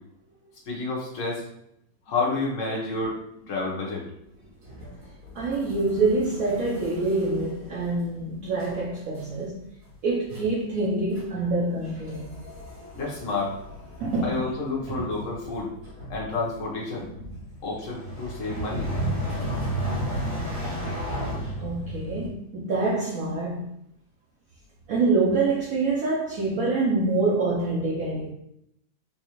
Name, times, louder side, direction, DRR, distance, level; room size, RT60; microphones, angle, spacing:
voice 1, 0.7-1.4 2.1-3.2 3.5-4.1 12.9-13.6 14.2-15.7 16.1-17.1 17.6-18.9, left 3 dB, 55° left, 1.0 m, -29 dB
sound 1, 4.6-8.2 8.6-8.8 9.1-9.4 9.8-9.9 10.3-10.6 11.1-11.3 11.6-22.3, equal, 55° right, 2.1 m, -34 dB
voice 2, 5.3-9.7 10.0-12.3 14.0-14.5 14.9-15.1 17.2-17.3 21.6-23.7 24.9-28.3, right 3 dB, 90° right, 0.7 m, -26 dB
4.0 x 2.5 x 2.9 m
omnidirectional pair, 2.1 m